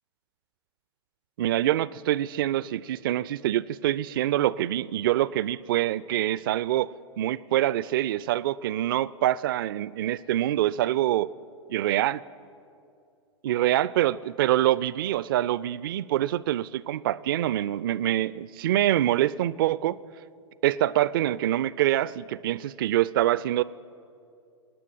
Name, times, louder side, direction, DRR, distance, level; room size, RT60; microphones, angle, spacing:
voice 1, 1.4-11.3 11.7-12.2 13.4-20.0 20.6-23.6, right 13 dB, 50° right, 19 dB, 0.4 m, -25 dB
27.0 x 9.8 x 5.5 m, 2.4 s
figure-of-eight pair, 100°, 15 cm